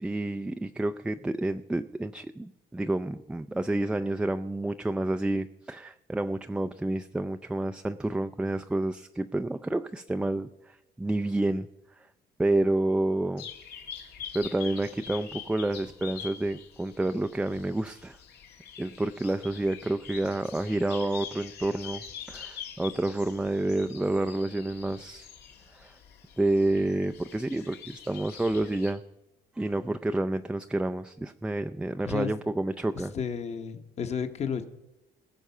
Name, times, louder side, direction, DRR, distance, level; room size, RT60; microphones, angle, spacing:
voice 1, 0.0-11.7 12.0-12.1 12.4-13.5 14.3-18.2 18.8-25.3 25.7-26.0 26.4-29.0 29.6-33.1, right 2 dB, 5° right, 8 dB, 0.3 m, -29 dB
sound 1, 13.4-28.9, left 8 dB, 75° left, 1.7 m, -45 dB
voice 2, 33.1-34.6, left 7 dB, 40° left, 9 dB, 1.1 m, -32 dB
20.0 x 6.9 x 5.5 m, 0.95 s
cardioid pair, 110°, 17 cm